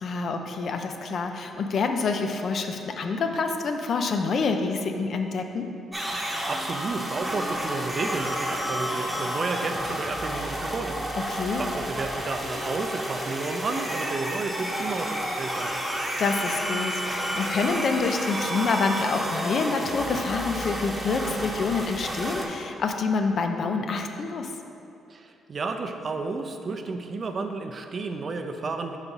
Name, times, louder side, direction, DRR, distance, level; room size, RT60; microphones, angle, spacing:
voice 1, 0.0-5.7 11.3-11.6 16.2-24.5, left 4 dB, 55° left, 5 dB, 0.5 m, -27 dB
sound 1, 5.9-22.4, equal, 5° right, 0.8 m, -30 dB
voice 2, 6.2-11.1 11.6-15.8 25.1-29.0, right 3 dB, 45° right, 5 dB, 0.4 m, -32 dB
4.7 x 4.0 x 5.4 m, 2.7 s
cardioid pair, 90°, 0 cm